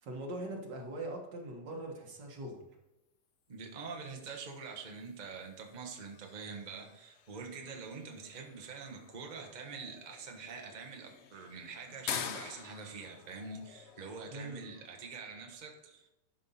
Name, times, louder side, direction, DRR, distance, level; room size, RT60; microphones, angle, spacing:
voice 1, 0.0-2.6 14.3-14.6, right 1 dB, 75° right, 1 dB, 2.1 m, -41 dB
voice 2, 3.5-16.1, right 4 dB, 30° right, 2 dB, 1.1 m, -45 dB
sound 1, 3.6-15.6, left 7 dB, 65° left, 0.6 m, -48 dB
11.5 x 5.5 x 4.2 m, 0.94 s
omnidirectional pair, 1.9 m